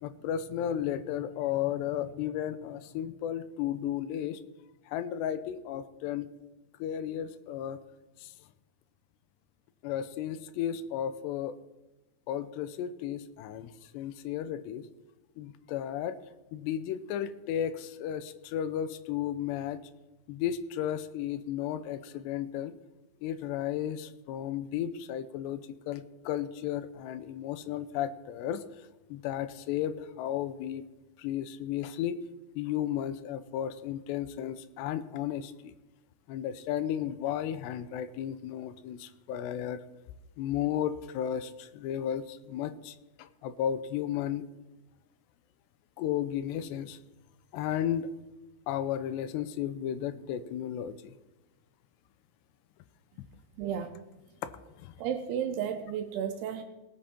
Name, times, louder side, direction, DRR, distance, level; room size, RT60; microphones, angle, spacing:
voice 1, 0.0-4.4 4.9-6.3 6.8-7.8 8.2-8.3 9.8-11.6 12.3-14.9 15.4-16.2 16.5-19.8 20.3-22.7 23.2-28.6 29.1-30.9 31.2-32.2 32.6-35.7 36.3-39.8 40.4-44.5 46.0-47.0 47.5-48.1 48.7-51.1 54.4-54.9, left 10 dB, 85° left, 13 dB, 2.8 m, -34 dB
voice 2, 53.6-53.9 55.0-56.6, right 8 dB, 80° right, 6 dB, 2.7 m, -33 dB
18.5 x 8.6 x 4.4 m, 1.1 s
omnidirectional pair, 4.9 m